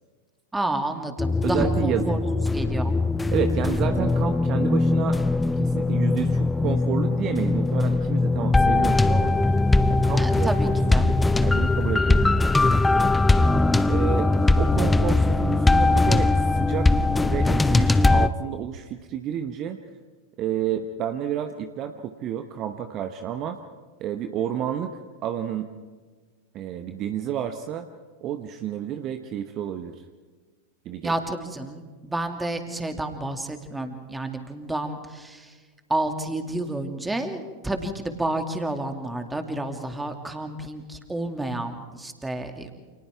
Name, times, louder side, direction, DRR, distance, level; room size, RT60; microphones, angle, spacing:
voice 1, 0.5-2.9 10.2-11.0 31.0-35.5 35.9-42.7, right 2 dB, 10° right, 6 dB, 2.3 m, -30 dB
sound 1, 1.2-18.3, left 2 dB, 10° left, 0.7 m, -21 dB
voice 2, 1.4-2.2 3.3-5.2 5.5-9.3 9.9-10.5 10.9-12.2 12.6-13.1 13.8-19.8 20.4-23.6 24.0-25.7 26.5-27.9 28.2-29.9 30.8-31.1, right 9 dB, 35° right, 8 dB, 1.1 m, -30 dB
29.5 x 28.5 x 3.5 m, 1.5 s
figure-of-eight pair, 90°, 0 cm